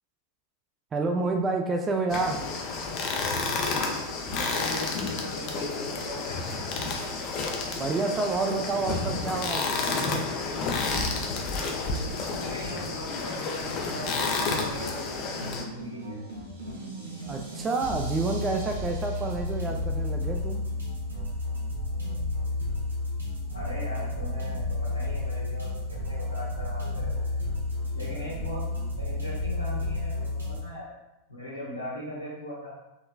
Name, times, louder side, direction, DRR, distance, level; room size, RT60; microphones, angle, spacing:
voice 1, 0.9-2.4 7.8-10.0 17.3-20.6, right 3 dB, 20° right, 3 dB, 0.3 m, -29 dB
sound 1, 2.1-15.6, left 3 dB, 40° left, 0.5 m, -30 dB
voice 2, 4.3-6.8 12.3-16.2 23.5-27.4 27.9-28.7 29.0-30.9 31.3-32.7, left 1 dB, 80° left, -7 dB, 0.9 m, -39 dB
sound 2, 14.0-30.6, left 2 dB, 75° right, 0.9 m, -32 dB
3.8 x 3.1 x 2.3 m, 0.95 s
figure-of-eight pair, 90°, 0 cm